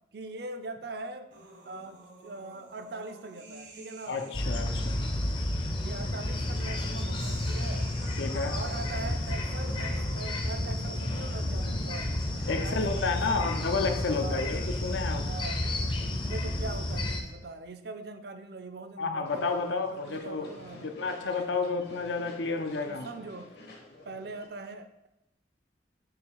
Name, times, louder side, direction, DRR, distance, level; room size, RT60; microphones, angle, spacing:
voice 1, 0.1-1.3 1.6-4.2 5.8-7.9 8.5-12.1 12.6-13.6 14.2-14.5 15.2-15.6 16.3-21.5 22.9-23.5 24.0-25.1, right 3 dB, 55° right, 8 dB, 0.5 m, -42 dB
sound 1, 1.3-4.8 5.8-17.3, right 2 dB, 80° right, 1.2 m, -50 dB
voice 2, 4.1-5.0 8.2-8.6 12.5-15.3 19.0-23.1, left 4 dB, 80° left, 5 dB, 0.7 m, -31 dB
sound 2, 4.3-17.2, left 1 dB, 25° left, 0.6 m, -31 dB
sound 3, 19.2-24.5, left 2 dB, 60° left, 1.1 m, -51 dB
6.5 x 3.2 x 4.6 m, 0.89 s
head